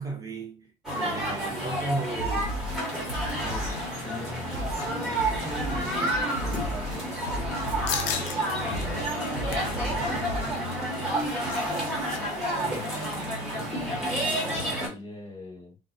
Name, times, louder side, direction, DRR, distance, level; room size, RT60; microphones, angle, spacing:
voice 1, 0.0-2.7, right 2 dB, 20° right, 0.7 m, -35 dB
sound 1, 0.8-14.9, right 1 dB, ahead, 1.1 m, -30 dB
voice 2, 1.2-1.7 3.4-3.6 4.0-7.6 8.6-10.7 12.6-15.8, left 2 dB, 20° left, 1.2 m, -43 dB
sound 2, 2.2-10.5, equal, 50° left, 1.2 m, -35 dB
sound 3, 7.9-8.4 8.8-8.9 9.3-9.7 11.0-12.2 12.5-12.6 12.9-13.2, left 7 dB, 85° left, 0.5 m, -34 dB
2.4 x 2.0 x 2.5 m
cardioid pair, 120°, 16 cm